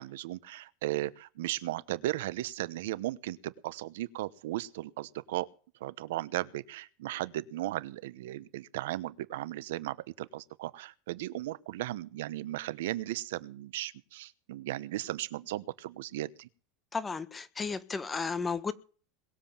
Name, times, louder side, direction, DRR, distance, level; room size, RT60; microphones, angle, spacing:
voice 1, 0.0-5.5 5.8-16.5, right 15 dB, 80° right, 1.0 m, -36 dB
voice 2, 16.9-18.7, left 5 dB, 15° left, 1.4 m, -33 dB
21.5 x 7.6 x 7.4 m
supercardioid pair, 130°, 0 cm